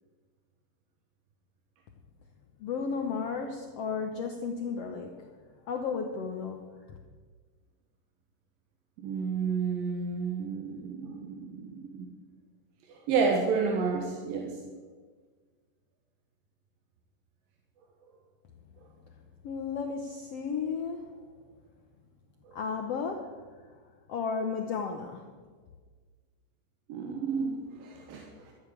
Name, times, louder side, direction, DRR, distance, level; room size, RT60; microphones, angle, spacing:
voice 1, 2.6-7.0 19.4-21.2 22.5-23.6 24.1-25.3, left 5 dB, 70° left, 4 dB, 1.5 m, -34 dB
voice 2, 9.0-12.1 12.9-14.6 22.5-22.6 26.9-28.5, right 5 dB, 85° right, 1 dB, 3.1 m, -31 dB
13.5 x 8.4 x 8.8 m, 1.5 s
omnidirectional pair, 3.9 m